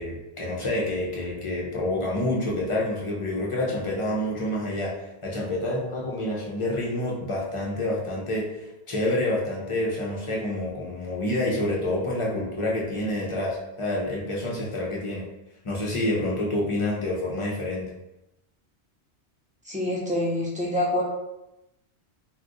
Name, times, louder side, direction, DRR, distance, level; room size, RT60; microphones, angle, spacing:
voice 1, 0.0-4.9 5.2-15.2 15.6-17.9, left 1 dB, 35° left, -3 dB, 0.5 m, -28 dB
voice 2, 19.6-21.0, left 1 dB, 10° right, -5 dB, 0.5 m, -26 dB
2.4 x 2.2 x 3.8 m, 0.92 s
omnidirectional pair, 1.1 m